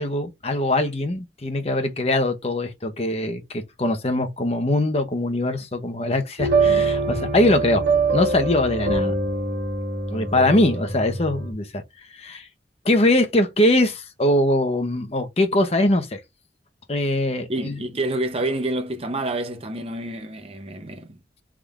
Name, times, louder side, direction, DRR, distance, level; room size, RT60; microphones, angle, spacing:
voice 1, 0.0-7.8 8.1-9.1 10.1-11.8 12.2-12.5 12.8-16.2 16.9-17.7, left 1 dB, 35° left, 0.8 m, -22 dB
sound 1, 6.4-11.5, right 3 dB, 75° right, 1.3 m, -23 dB
voice 2, 17.5-21.2, right 1 dB, 35° right, 0.8 m, -28 dB
3.7 x 3.3 x 3.5 m
head